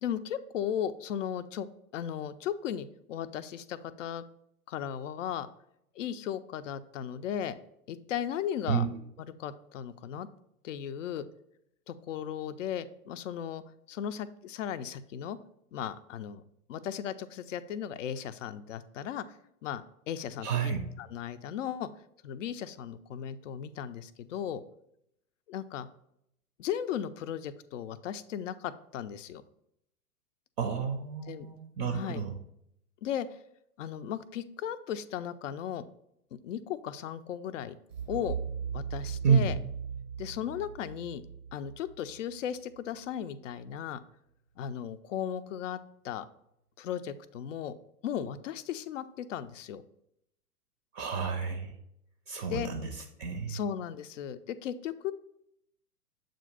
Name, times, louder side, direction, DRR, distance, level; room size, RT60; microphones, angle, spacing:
voice 1, 0.0-4.2 4.7-5.5 5.9-7.6 7.9-8.9 9.2-10.3 10.6-11.2 11.9-13.6 13.9-15.4 15.7-16.4 16.7-21.9 22.2-24.6 25.5-25.9 26.6-29.4 31.3-31.5 31.9-32.2 33.0-33.4 33.8-35.8 36.4-37.8 38.1-38.4 38.7-39.6 40.2-41.2 41.5-44.0 44.6-45.8 46.0-46.3 46.8-47.7 48.0-49.8 52.5-52.7 53.5-55.1, left 9 dB, 55° left, 13 dB, 0.5 m, -36 dB
voice 2, 8.7-9.0 20.4-20.8 30.6-32.4 39.2-39.5 50.9-51.8 52.3-53.6, right 6 dB, 30° right, 4 dB, 0.5 m, -30 dB
sound 1, 37.9-42.8, right 7 dB, 90° right, 0.8 m, -38 dB
7.3 x 2.6 x 5.3 m, 0.76 s
figure-of-eight pair, 110°, 46 cm